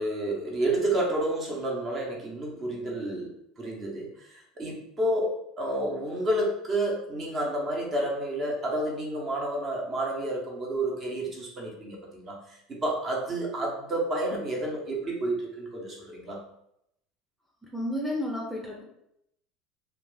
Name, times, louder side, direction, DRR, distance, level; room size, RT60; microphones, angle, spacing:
voice 1, 0.0-3.3 3.6-16.4, right 1 dB, 35° right, -2 dB, 1.0 m, -30 dB
voice 2, 17.7-18.8, left 1 dB, ahead, -3 dB, 0.6 m, -31 dB
2.3 x 2.3 x 4.0 m, 0.76 s
figure-of-eight pair, 70°, 0 cm